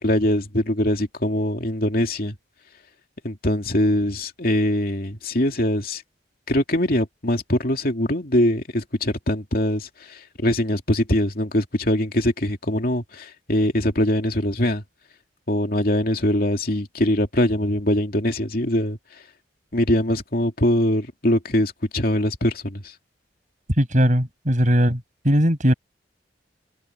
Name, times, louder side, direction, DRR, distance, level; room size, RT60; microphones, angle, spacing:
voice 1, 0.0-2.3 3.2-6.0 6.5-14.8 15.5-19.0 19.7-22.8, left 1 dB, 50° left, 2.8 m, -22 dB
voice 2, 23.8-25.0 25.2-25.7, equal, 40° right, 7.7 m, -18 dB
open air
head